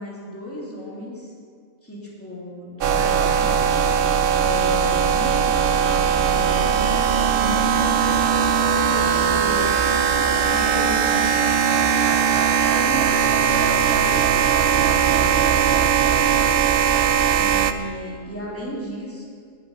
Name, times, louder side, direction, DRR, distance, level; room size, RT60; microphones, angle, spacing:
voice 1, 0.0-1.3 1.8-3.6 4.4-7.0 7.4-9.9 10.1-11.4 12.7-14.4 14.9-15.6 17.4-19.2, left 1 dB, 10° left, -5 dB, 3.3 m, -34 dB
sound 1, 2.8-17.7, right 7 dB, 50° right, 0.7 m, -19 dB
12.0 x 8.4 x 9.7 m, 2.1 s
omnidirectional pair, 1.5 m